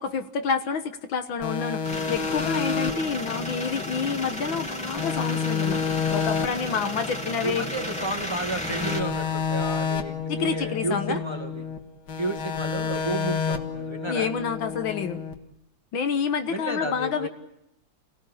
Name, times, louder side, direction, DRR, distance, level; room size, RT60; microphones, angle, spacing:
voice 1, 0.0-5.8 6.1-7.7 10.3-11.2 14.1-15.2 15.9-17.3, left 6 dB, 75° left, 8 dB, 2.0 m, -28 dB
sound 1, 1.4-4.7 5.0-8.2 8.6-11.8 12.1-15.3, left 6 dB, 55° left, 2.3 m, -30 dB
sound 2, 1.8-9.0, left 1 dB, 5° left, 2.8 m, -34 dB
voice 2, 2.6-2.9 6.5-6.8 7.4-11.7 12.2-14.3 16.5-17.3, right 1 dB, 15° right, 2 dB, 2.1 m, -32 dB
29.5 x 18.0 x 8.7 m, 0.81 s
omnidirectional pair, 2.2 m